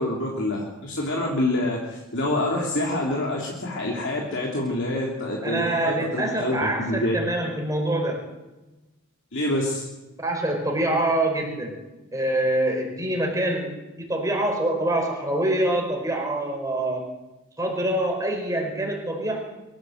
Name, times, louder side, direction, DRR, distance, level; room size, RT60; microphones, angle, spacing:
voice 1, 0.0-7.2 9.3-9.8, left 1 dB, 55° left, -2 dB, 3.2 m, -26 dB
voice 2, 5.4-8.2 10.2-11.8 12.1-13.7 14.0-17.0 17.6-19.4, right 1 dB, 15° right, 1 dB, 5.0 m, -25 dB
23.5 x 15.0 x 8.0 m, 1.1 s
head